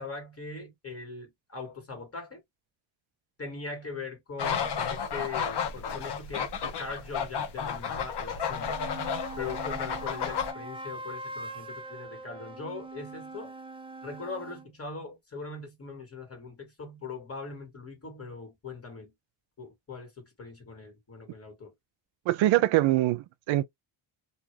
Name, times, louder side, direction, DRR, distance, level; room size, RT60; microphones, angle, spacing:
voice 1, 0.0-2.4 3.4-6.5 6.8-8.8 9.4-13.5 14.0-19.1 19.6-21.7, left 4 dB, 30° left, 1.8 m, -41 dB
sound 1, 4.4-10.5, left 6 dB, 55° left, 1.0 m, -32 dB
sound 2, 8.5-14.7, right 2 dB, 10° right, 0.5 m, -42 dB
voice 2, 22.3-23.7, right 15 dB, 80° right, 0.5 m, -23 dB
2.7 x 2.4 x 3.2 m
cardioid pair, 110°, 47 cm